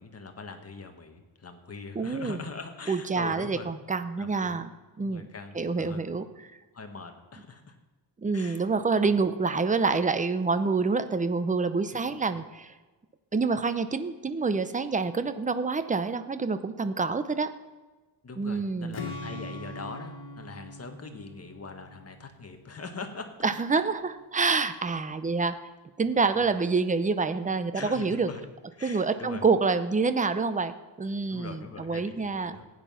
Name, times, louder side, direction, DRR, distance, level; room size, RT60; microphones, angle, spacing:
voice 1, 0.0-3.7 4.2-4.6 5.0-6.2 6.7-7.7 8.3-8.7 9.1-9.2 11.9-12.0 12.3-12.4 18.2-23.3 26.2-26.6 27.7-28.4 28.7-29.4 31.3-32.7, left 4 dB, 30° left, 5 dB, 1.5 m, -42 dB
voice 2, 2.0-2.4 2.9-4.7 5.0-5.2 5.5-6.2 8.2-12.7 13.3-17.5 18.4-19.0 23.4-24.0 24.3-25.6 26.0-28.3 28.8-32.6, right 4 dB, 15° right, 11 dB, 0.6 m, -27 dB
Strum, 18.9-23.0, left 2 dB, 60° left, 2.6 m, -41 dB
15.5 x 9.6 x 5.6 m, 1.2 s
wide cardioid pair, 150°, 45 cm